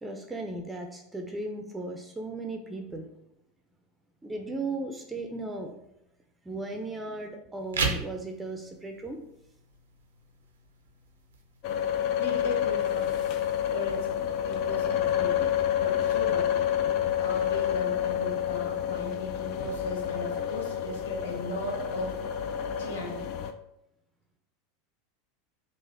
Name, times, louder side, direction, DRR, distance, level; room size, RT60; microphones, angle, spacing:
voice 1, 0.0-3.1 4.2-5.7 6.5-9.2, right 2 dB, 15° right, 3 dB, 0.5 m, -36 dB
sound 1, 7.6-18.6, right 4 dB, 80° right, 0.6 m, -40 dB
sound 2, 11.6-23.5, left 10 dB, 50° left, 0.4 m, -29 dB
voice 2, 12.1-13.2 13.6-16.7 17.2-22.2 22.8-23.4, left 1 dB, 70° left, -1 dB, 0.8 m, -37 dB
3.9 x 2.5 x 4.2 m, 0.80 s
figure-of-eight pair, 85°, 0 cm